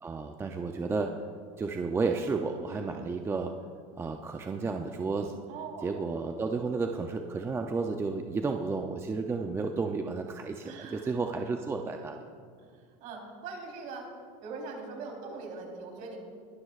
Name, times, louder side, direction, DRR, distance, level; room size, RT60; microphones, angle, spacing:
voice 1, 0.0-1.2 1.6-3.5 4.0-5.4 5.8-12.2, right 4 dB, 15° right, 4 dB, 0.5 m, -32 dB
voice 2, 2.7-3.0 5.5-5.9 10.6-11.2 13.0-14.1 14.4-16.2, right 4 dB, 50° right, 0 dB, 3.8 m, -41 dB
21.0 x 12.0 x 2.4 m, 2.2 s
supercardioid pair, 120°, 17 cm